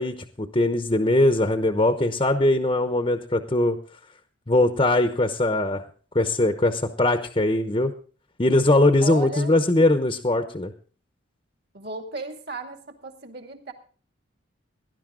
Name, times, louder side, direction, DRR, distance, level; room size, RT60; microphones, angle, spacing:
voice 1, 0.0-3.8 4.5-5.8 6.1-7.9 8.4-10.7, left 1 dB, 25° left, 7 dB, 0.8 m, -21 dB
voice 2, 9.0-9.6 11.7-13.7, right 2 dB, 55° right, 5 dB, 2.3 m, -35 dB
18.5 x 11.5 x 3.8 m, 0.40 s
head